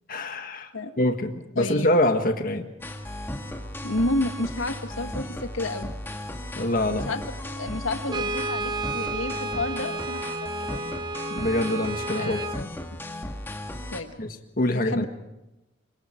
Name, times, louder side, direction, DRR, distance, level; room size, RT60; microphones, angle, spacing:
voice 1, 0.1-0.7 1.0-2.7 6.6-7.1 11.3-12.7 14.2-14.3 14.6-15.1, left 1 dB, 45° left, 6 dB, 1.7 m, -25 dB
voice 2, 1.6-1.9 3.8-5.9 6.9-7.2 7.5-10.9 12.2-12.7 13.9-14.1 14.7-15.1, left 2 dB, 85° left, 6 dB, 1.9 m, -30 dB
sound 1, 2.8-14.0, left 1 dB, 10° left, 2.0 m, -36 dB
Brass instrument, 8.1-12.7, right 2 dB, 20° right, 0.7 m, -32 dB
27.0 x 24.0 x 4.6 m, 0.97 s
head